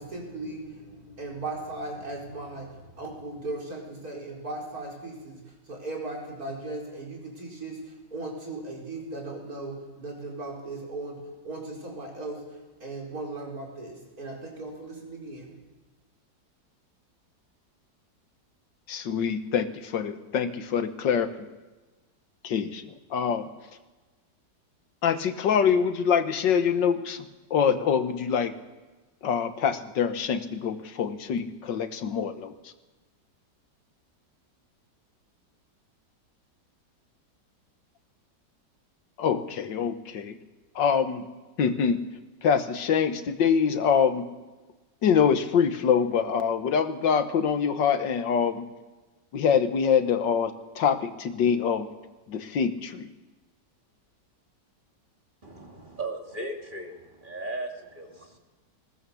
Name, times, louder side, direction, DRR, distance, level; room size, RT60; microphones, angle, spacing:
voice 1, 0.0-11.2 11.4-12.4 12.8-15.6, right 2 dB, 55° right, -1 dB, 5.0 m, -37 dB
voice 2, 18.9-21.5 22.4-22.8 23.1-23.5 25.0-28.5 29.2-32.7 39.2-40.4 40.8-41.3 41.6-42.0 42.4-44.3 45.0-48.7 49.3-51.9 52.3-53.1, left 7 dB, 80° left, 10 dB, 1.9 m, -25 dB
voice 3, 55.4-58.4, right 2 dB, 25° right, 2 dB, 2.3 m, -37 dB
20.5 x 18.5 x 7.0 m, 1.2 s
omnidirectional pair, 1.9 m